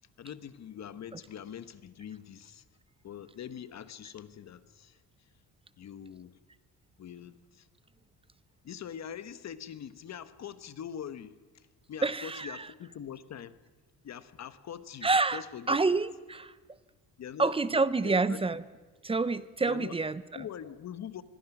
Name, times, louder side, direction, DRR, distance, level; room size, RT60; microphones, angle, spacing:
voice 1, 0.2-2.6 3.0-5.3 5.8-6.4 7.0-7.7 8.6-13.6 14.0-15.8 17.2-18.4 19.6-20.0 20.3-21.2, left 9 dB, 45° left, 13 dB, 1.0 m, -43 dB
voice 2, 12.0-12.7 15.0-15.4 15.7-16.5 17.4-18.6 19.0-20.2, right 3 dB, 15° right, 16 dB, 0.6 m, -27 dB
26.5 x 21.5 x 6.0 m, 1.3 s
cardioid pair, 145°, 37 cm